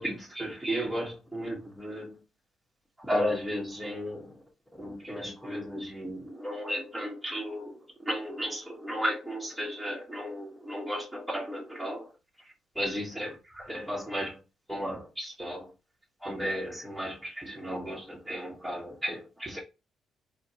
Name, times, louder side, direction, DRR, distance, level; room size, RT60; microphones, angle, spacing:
voice 1, 0.0-2.2 3.0-4.3 4.8-12.1 12.7-14.4 14.7-15.7 16.2-19.6, equal, ahead, 1.6 m, -34 dB
4.1 x 3.0 x 2.9 m
cardioid pair, 90°, 0 cm